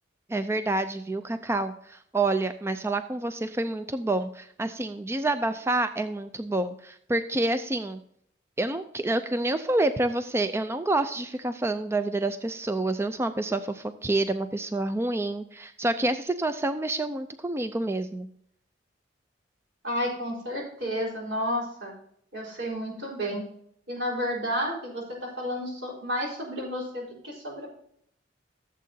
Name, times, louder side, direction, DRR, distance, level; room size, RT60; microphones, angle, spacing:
voice 1, 0.3-8.0 8.6-18.3, right 2 dB, 15° right, 10 dB, 0.4 m, -28 dB
voice 2, 19.8-21.9 22.3-23.4 23.9-27.8, equal, 70° right, -2 dB, 4.2 m, -31 dB
15.0 x 7.4 x 2.7 m, 0.68 s
head